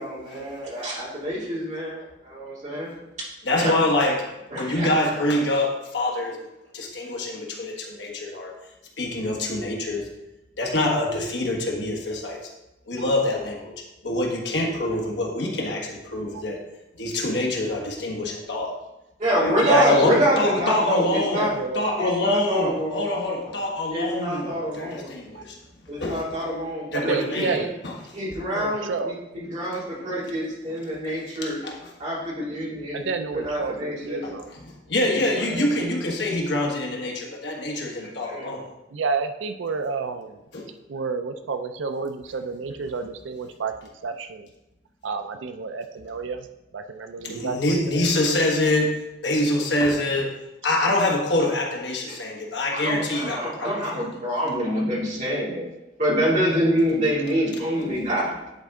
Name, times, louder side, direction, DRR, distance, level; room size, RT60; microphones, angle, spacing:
voice 1, 0.0-2.9 3.6-3.7 4.5-4.9 19.2-21.5 22.0-23.1 23.9-25.1 25.9-27.7 28.1-31.6 32.0-33.0 33.3-34.2 35.1-35.2 35.5-35.7 38.2-38.5 52.1-52.2 52.7-55.7 56.0-58.3, equal, 40° right, -6 dB, 2.6 m, -26 dB
voice 2, 3.4-6.5 6.7-8.5 9.0-10.1 10.6-12.5 12.9-16.6 17.0-18.8 19.3-21.5 21.7-25.6 26.0-26.4 26.9-27.9 31.4-31.9 34.2-34.3 34.7-38.7 40.5-40.7 47.2-49.0 49.2-50.4 50.6-54.1, left 1 dB, 75° left, 0 dB, 1.4 m, -25 dB
voice 3, 19.6-20.7 21.3-21.9 25.3-25.4 26.9-27.7 28.5-29.2 32.9-34.5 38.9-40.4 40.9-44.5 45.0-46.5 46.7-48.1 57.2-57.4, right 4 dB, 90° right, 8 dB, 0.5 m, -30 dB
10.5 x 4.3 x 3.7 m, 0.96 s
head